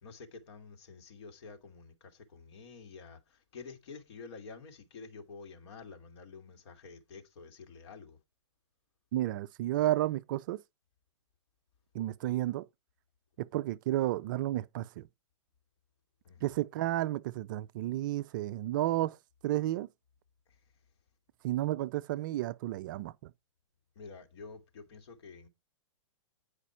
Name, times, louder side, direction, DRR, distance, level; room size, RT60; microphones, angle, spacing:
voice 1, 0.0-1.9 2.3-3.2 3.5-8.2 16.3-16.4 24.0-25.5, left 4 dB, 55° left, 2.1 m, -49 dB
voice 2, 9.1-10.6 11.9-12.6 13.4-15.0 16.4-19.2 19.4-19.9 21.4-23.1, right 15 dB, 40° right, 0.4 m, -32 dB
9.8 x 4.9 x 4.4 m
hypercardioid pair, 150°, 16 cm